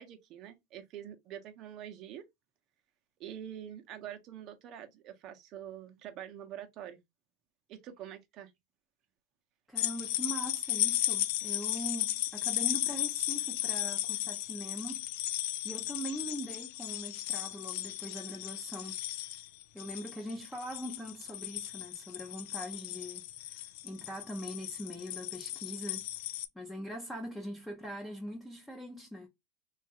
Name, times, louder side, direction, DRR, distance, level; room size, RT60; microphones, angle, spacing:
voice 1, 0.0-2.2 3.2-7.0 7.7-8.5, right 10 dB, 45° right, 0.7 m, -45 dB
voice 2, 9.7-15.1 15.6-19.3 19.7-26.0 26.5-29.3, equal, 5° left, 0.7 m, -42 dB
sound 1, 9.8-26.5, left 14 dB, 70° left, 0.3 m, -35 dB
2.9 x 2.4 x 2.8 m
supercardioid pair, 130°, 0 cm